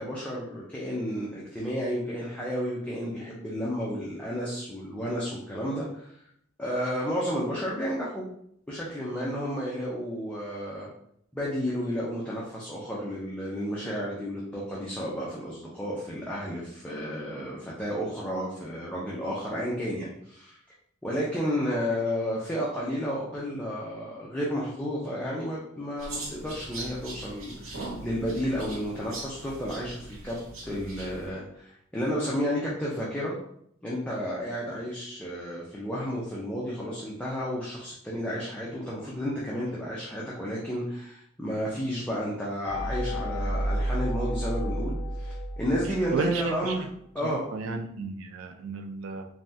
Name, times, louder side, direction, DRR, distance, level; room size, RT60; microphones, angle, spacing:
voice 1, 0.0-6.2 6.6-8.3 8.7-10.9 11.3-20.6 21.0-30.4 30.6-33.3 33.8-46.9 47.1-47.4, equal, 5° left, -6 dB, 0.4 m, -32 dB
sound 1, 26.0-31.3, right 2 dB, 90° right, 0.9 m, -40 dB
sound 2, 42.7-46.4, equal, 60° left, 0.5 m, -31 dB
voice 2, 46.1-46.8 47.2-49.3, right 4 dB, 70° right, 6 dB, 0.4 m, -33 dB
3.3 x 2.2 x 2.6 m, 0.70 s
head